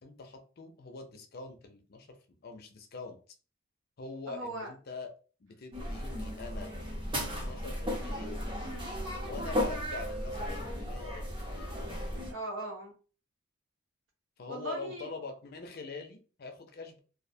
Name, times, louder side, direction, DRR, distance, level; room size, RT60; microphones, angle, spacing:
voice 1, 0.0-3.2 4.0-5.1 5.4-6.7 7.4-8.3 9.2-11.7 14.4-17.0, left 3 dB, 50° left, 5 dB, 0.5 m, -44 dB
voice 2, 4.3-4.7 8.6-8.9 12.2-12.9 14.5-15.1, right 1 dB, 80° right, 0 dB, 0.8 m, -39 dB
sound 1, 5.7-12.3, equal, 25° right, 0.6 m, -35 dB
2.5 x 2.0 x 2.6 m, 0.37 s
head